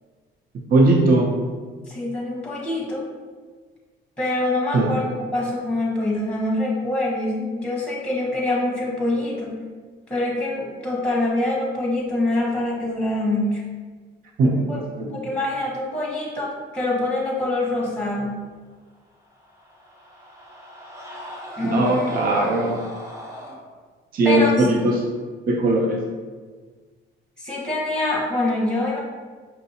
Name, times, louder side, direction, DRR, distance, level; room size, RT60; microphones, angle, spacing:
voice 1, 0.7-1.3 4.7-4.9 14.4-15.2 21.6-22.8 24.1-25.0 25.5-26.0, right 2 dB, 45° right, -1 dB, 0.5 m, -19 dB
voice 2, 1.9-3.1 4.2-9.5 10.1-13.6 14.7-14.8 15.1-18.4 21.6-22.1 24.2-24.7 27.4-29.0, left 2 dB, 5° left, -3 dB, 1.0 m, -25 dB
Screaming, 19.1-23.6, equal, 15° right, 0.7 m, -38 dB
5.5 x 2.6 x 2.7 m, 1.5 s
cardioid pair, 125°, 21 cm